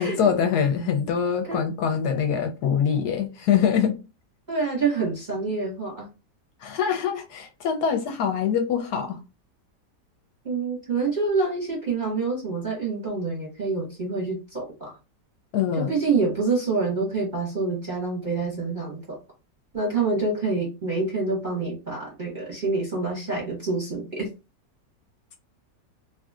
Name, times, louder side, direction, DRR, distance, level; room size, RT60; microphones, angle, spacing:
voice 1, 0.0-4.0 6.6-9.2 15.5-16.0, left 7 dB, 70° left, 1.0 m, -24 dB
voice 2, 4.5-6.1 10.4-15.0 15.7-19.2 19.7-24.3, right 4 dB, 35° right, 0.8 m, -27 dB
2.9 x 2.6 x 2.3 m
omnidirectional pair, 1.9 m